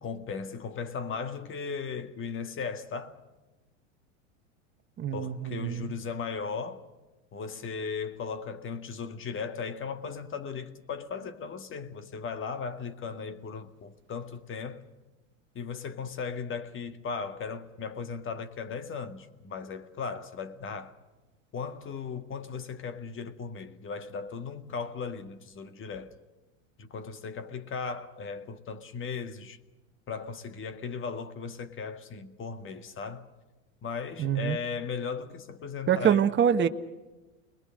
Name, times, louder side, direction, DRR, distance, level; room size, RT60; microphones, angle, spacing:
voice 1, 0.0-3.2 5.1-6.9 7.3-14.8 15.5-20.9 21.5-26.1 26.8-29.6 30.1-33.3 33.8-36.3, left 5 dB, 30° left, 2.0 m, -37 dB
voice 2, 5.0-5.9 34.2-34.6 35.9-36.7, right 8 dB, 30° right, 1.4 m, -25 dB
29.5 x 21.5 x 6.5 m
hypercardioid pair, 100°, 39 cm